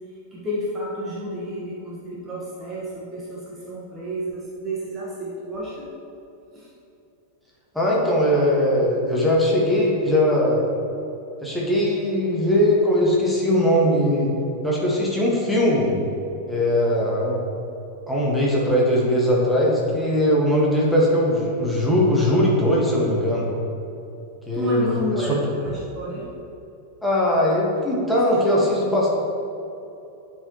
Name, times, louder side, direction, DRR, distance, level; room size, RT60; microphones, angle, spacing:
voice 1, 0.3-5.9 6.5-6.7 24.5-26.3 28.1-28.2 28.5-28.7, equal, 20° right, -6 dB, 1.4 m, -31 dB
voice 2, 7.7-10.6 11.4-14.3 14.6-16.0 16.5-17.4 18.1-23.5 24.5-24.8 25.2-25.4 27.0-29.1, equal, ahead, -5 dB, 1.6 m, -20 dB
11.5 x 4.7 x 3.1 m, 2.9 s
figure-of-eight pair, 90°, 0 cm